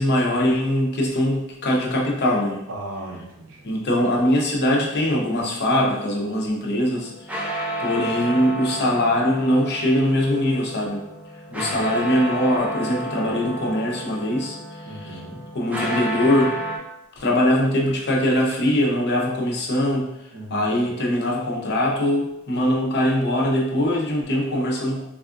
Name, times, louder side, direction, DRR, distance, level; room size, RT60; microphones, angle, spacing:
voice 1, 0.0-2.6 3.6-7.4 7.8-11.1 11.5-15.2 15.5-16.5 17.2-20.1 20.5-25.0, left 1 dB, 55° left, -1 dB, 0.6 m, -22 dB
voice 2, 2.7-3.7 11.5-11.9 14.9-15.5 20.3-20.9, right 1 dB, 65° right, -1 dB, 0.7 m, -37 dB
sound 1, 7.0-16.8, right 1 dB, 5° right, 0.4 m, -31 dB
3.5 x 2.4 x 2.4 m, 0.84 s
head